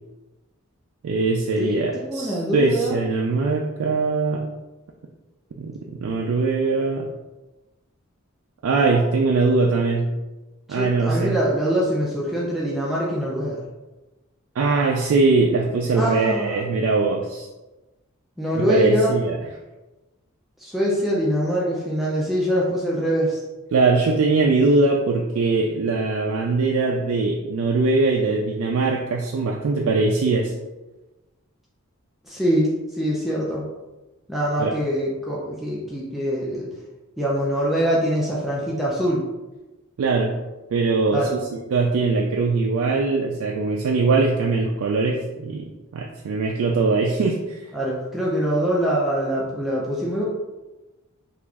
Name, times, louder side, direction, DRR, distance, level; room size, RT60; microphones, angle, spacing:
voice 1, 1.0-4.4 5.6-5.7 6.0-7.1 8.6-10.1 10.7-11.4 14.6-17.5 18.5-19.4 23.7-30.5 34.6-34.7 40.0-40.4 40.7-45.7 45.9-47.6, right 3 dB, 70° right, 0 dB, 0.3 m, -21 dB
voice 2, 1.6-3.0 10.7-13.6 15.9-16.6 18.4-19.2 20.6-23.4 32.2-33.7 34.3-36.7 37.2-39.2 41.1-41.3 47.7-50.2, equal, ahead, -6 dB, 0.4 m, -23 dB
3.0 x 2.4 x 3.4 m, 1.1 s
head